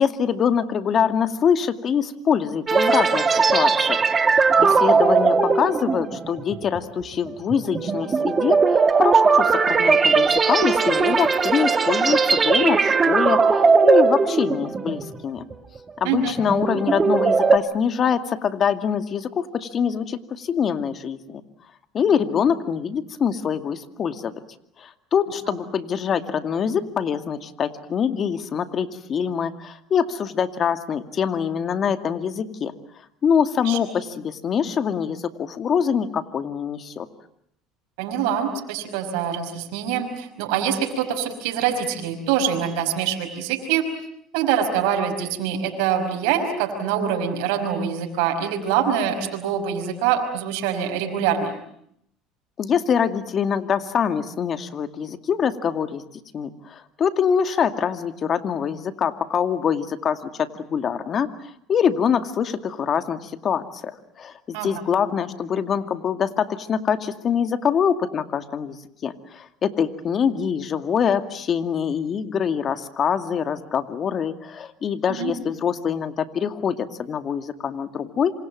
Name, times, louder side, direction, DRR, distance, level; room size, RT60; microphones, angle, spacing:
voice 1, 0.0-4.0 4.3-15.4 16.0-21.4 21.9-24.3 24.8-32.7 33.2-37.1 52.6-56.0 56.3-61.3 61.7-68.8 69.0-78.3, left 7 dB, 40° left, 9 dB, 2.3 m, -24 dB
sound 1, 2.7-15.2 15.5-15.8 16.2-17.6, right 5 dB, 25° right, 2.4 m, -19 dB
voice 2, 38.0-43.9 44.3-51.5 64.5-64.7 75.1-75.3, right 8 dB, 80° right, 3 dB, 5.4 m, -24 dB
27.5 x 26.0 x 7.6 m, 0.71 s
supercardioid pair, 100°, 0 cm